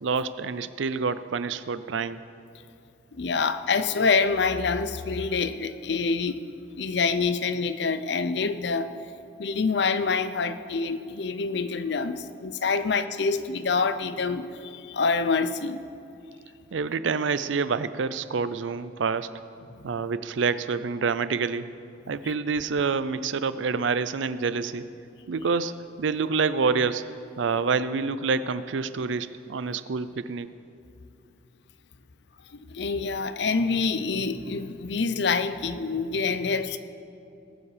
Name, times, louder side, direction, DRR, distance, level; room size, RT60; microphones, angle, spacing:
voice 1, 0.0-2.2 16.7-19.3 19.8-21.7 22.1-24.9 25.3-27.1 27.4-30.5, right 5 dB, 80° right, 14 dB, 0.5 m, -27 dB
voice 2, 3.1-6.4 6.8-8.9 9.4-15.8 32.5-36.8, left 4 dB, 65° left, 11 dB, 0.6 m, -26 dB
19.5 x 7.3 x 5.0 m, 2.6 s
head